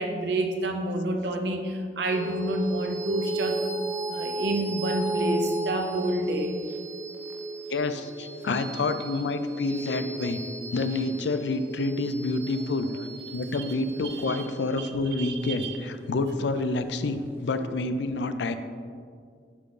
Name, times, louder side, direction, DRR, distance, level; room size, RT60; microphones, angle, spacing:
voice 1, 0.0-3.6 4.1-6.5 14.1-14.5 14.7-15.8, right 1 dB, 75° right, 4 dB, 0.8 m, -29 dB
sound 1, 2.1-16.9, right 2 dB, 10° right, 0.5 m, -35 dB
voice 2, 7.7-10.4 10.7-12.9 13.3-18.6, left 2 dB, 80° left, 10 dB, 0.4 m, -28 dB
11.0 x 3.7 x 3.8 m, 2.1 s
head